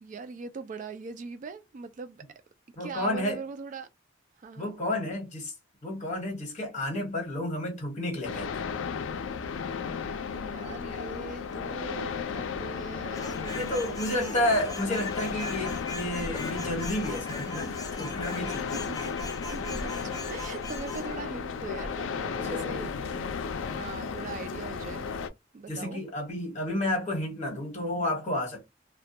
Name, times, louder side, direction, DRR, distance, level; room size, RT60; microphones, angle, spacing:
voice 1, 0.0-2.2 2.8-3.9 4.4-4.7 10.3-14.4 18.7-19.1 19.5-23.2 23.5-25.2 25.5-26.0, right 4 dB, 40° right, 0.3 m, -41 dB
voice 2, 2.8-3.4 4.6-5.5 5.8-8.6 13.5-18.7 21.7-21.8 22.3-22.9 24.0-24.2 25.7-28.7, left 1 dB, 40° left, 1.1 m, -31 dB
sound 1, 8.2-25.3, left 6 dB, 90° left, 0.4 m, -34 dB
sound 2, 13.1-21.1, left 2 dB, 20° left, 0.5 m, -40 dB
2.2 x 2.2 x 2.6 m
head